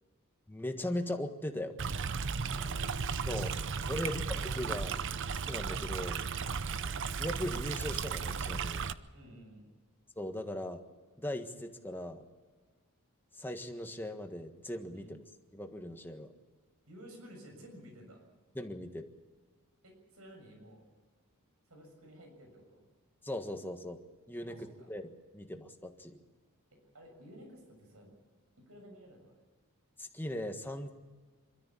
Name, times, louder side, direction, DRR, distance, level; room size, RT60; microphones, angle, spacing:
voice 1, 0.5-1.7 3.3-3.5 3.9-5.0 5.5-6.2 7.2-8.9 10.2-10.8 11.2-12.2 13.3-15.2 15.5-16.3 18.5-19.1 23.2-24.0 24.3-26.2 30.0-30.9, left 1 dB, 10° left, 5 dB, 1.6 m, -39 dB
Stream, 1.8-8.9, right 5 dB, 55° right, 0.7 m, -35 dB
voice 2, 2.3-2.9 6.3-6.5 9.1-9.7 14.9-15.1 16.9-18.2 19.8-20.8 21.7-22.9 24.4-24.9 26.7-28.1 28.7-29.4, equal, 80° right, 2 dB, 6.9 m, -53 dB
26.0 x 13.5 x 8.5 m, 1.4 s
head